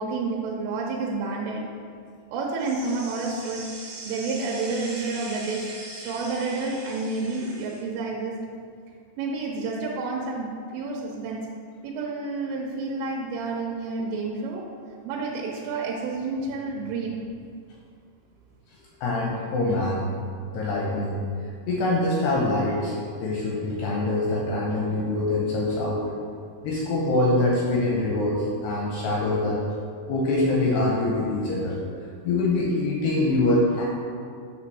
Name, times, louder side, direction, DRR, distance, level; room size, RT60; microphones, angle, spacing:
voice 1, 0.0-1.7 2.3-3.7 4.1-8.4 9.2-11.5 11.8-14.7 15.0-17.2, right 3 dB, 85° right, -2 dB, 3.2 m, -30 dB
sound 1, 2.6-7.8, right 2 dB, 65° right, 1.4 m, -40 dB
voice 2, 19.0-20.1 20.5-21.2 21.7-26.0 26.6-29.6 30.1-31.8 32.2-33.9, left 2 dB, 85° left, -3 dB, 2.3 m, -24 dB
9.5 x 3.4 x 6.2 m, 2.3 s
omnidirectional pair, 5.7 m